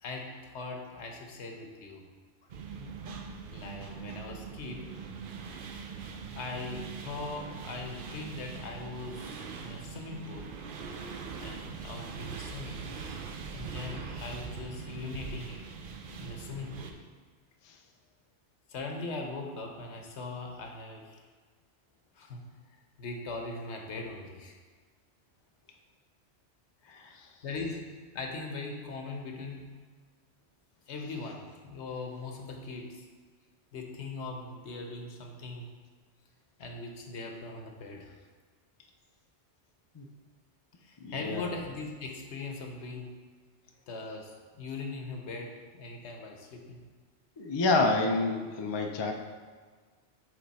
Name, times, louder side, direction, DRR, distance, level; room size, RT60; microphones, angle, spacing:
voice 1, 0.0-2.0 3.5-4.8 6.3-10.5 11.4-12.9 13.5-15.6 16.2-16.9 18.7-21.2 22.1-22.4 23.0-24.6 27.4-27.8 28.1-29.7 30.9-33.1 33.7-35.7 36.6-38.1 40.8-43.1 43.9-46.8, left 3 dB, 75° left, 2 dB, 1.1 m, -40 dB
sound 1, 2.5-16.9, right 5 dB, 60° right, 0.7 m, -42 dB
voice 2, 41.0-41.5 47.4-49.1, left 3 dB, 45° left, 3 dB, 0.3 m, -28 dB
7.7 x 3.3 x 4.0 m, 1.5 s
omnidirectional pair, 1.2 m